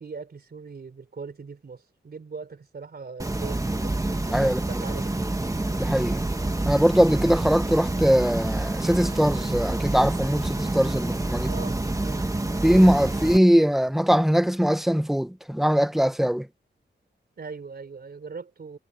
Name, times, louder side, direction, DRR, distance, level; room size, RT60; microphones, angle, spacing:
voice 1, 0.0-4.0 4.3-5.1 11.4-12.3 17.4-18.8, right 5 dB, 55° right, 3.8 m, -40 dB
sound 1, 3.2-13.4, right 2 dB, 15° right, 1.5 m, -27 dB
voice 2, 4.3-4.9 5.8-6.2 6.7-11.5 12.6-16.5, equal, ahead, 0.9 m, -21 dB
wide cardioid pair, 115°, 19 cm